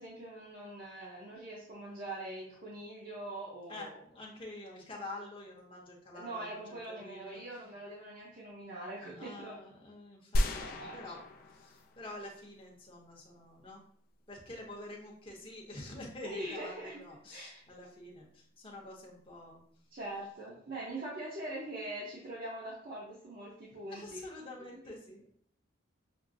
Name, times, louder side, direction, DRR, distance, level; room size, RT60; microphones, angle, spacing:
voice 1, 0.0-4.0 6.1-9.5 10.4-11.2 16.2-17.0 17.3-17.6 19.9-24.5, right 1 dB, 45° right, -6 dB, 0.7 m, -43 dB
voice 2, 3.7-7.4 9.1-11.2 11.5-13.8 14.3-19.6 23.7-25.3, left 1 dB, 25° left, -2 dB, 0.8 m, -47 dB
sound 1, 10.3-12.3 12.6-12.7, left 1 dB, 45° left, 0.3 m, -34 dB
6.0 x 2.0 x 2.6 m, 0.63 s
head